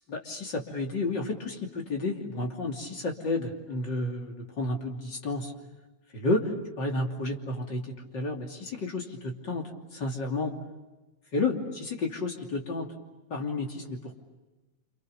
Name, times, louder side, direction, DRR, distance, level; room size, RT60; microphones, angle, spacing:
voice 1, 0.1-5.5 6.1-6.5 6.8-10.5 11.3-12.9 13.3-14.1, left 2 dB, 35° left, 1 dB, 3.3 m, -31 dB
29.5 x 27.5 x 6.7 m, 1.1 s
omnidirectional pair, 3.7 m